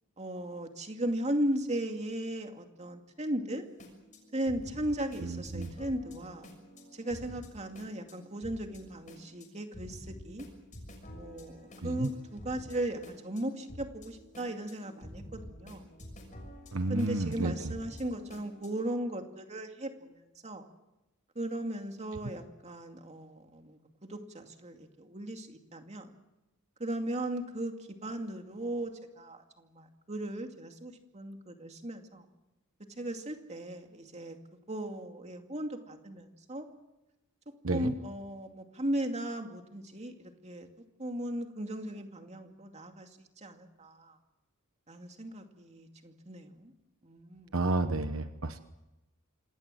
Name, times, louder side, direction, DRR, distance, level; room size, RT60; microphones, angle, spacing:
voice 1, 0.2-3.6 4.3-6.5 6.9-10.5 11.1-15.9 16.9-20.6 21.4-26.1 26.8-27.7 28.0-32.2 33.0-34.4 34.7-36.7 37.7-40.7 41.0-43.1 43.4-44.2 44.9-46.7 47.0-47.6, right 1 dB, 30° right, 5 dB, 2.4 m, -37 dB
sound 1, 3.6-18.8, equal, 35° left, 6.4 m, -50 dB
voice 2, 16.7-17.5 37.6-37.9 47.5-48.6, right 2 dB, 70° right, 9 dB, 1.1 m, -30 dB
26.5 x 19.5 x 7.7 m, 0.98 s
head